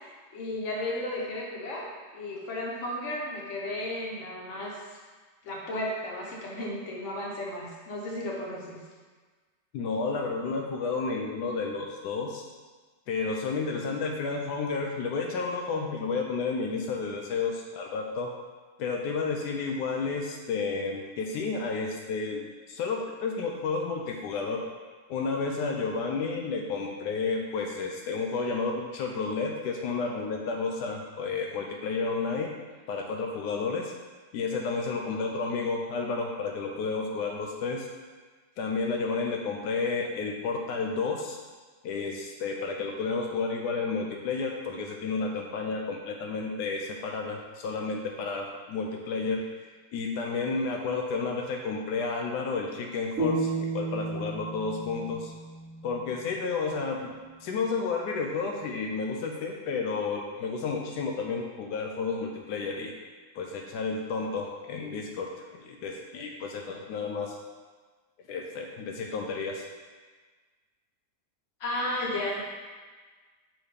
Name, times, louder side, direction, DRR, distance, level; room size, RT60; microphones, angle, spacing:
voice 1, 0.0-1.9 2.1-5.0 5.4-8.8 71.6-72.5, left 1 dB, 50° left, -3 dB, 1.4 m, -34 dB
voice 2, 9.7-12.5 13.1-18.3 18.8-22.4 22.7-24.6 25.1-32.5 32.9-33.9 34.3-37.9 38.6-41.4 41.8-49.5 49.9-55.3 55.8-57.1 57.4-62.9 63.3-67.4 68.3-69.6, left 4 dB, 85° left, 1 dB, 1.2 m, -31 dB
sound 1, 53.2-56.3, right 2 dB, 60° right, 1.2 m, -33 dB
6.4 x 3.0 x 5.0 m, 1.4 s
omnidirectional pair, 1.7 m